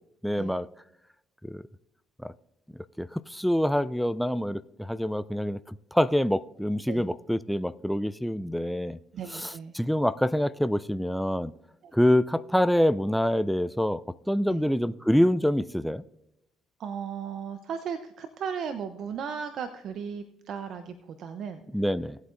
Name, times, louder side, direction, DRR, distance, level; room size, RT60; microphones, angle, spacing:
voice 1, 0.2-0.7 1.4-1.6 2.2-2.3 3.0-9.0 9.3-11.5 11.9-14.0 14.3-16.0 21.7-22.2, equal, ahead, 0.4 m, -26 dB
voice 2, 9.1-9.7 11.8-11.9 14.5-14.6 16.8-21.6, right 7 dB, 65° right, 0.6 m, -36 dB
18.0 x 8.1 x 2.5 m
supercardioid pair, 65°, 0 cm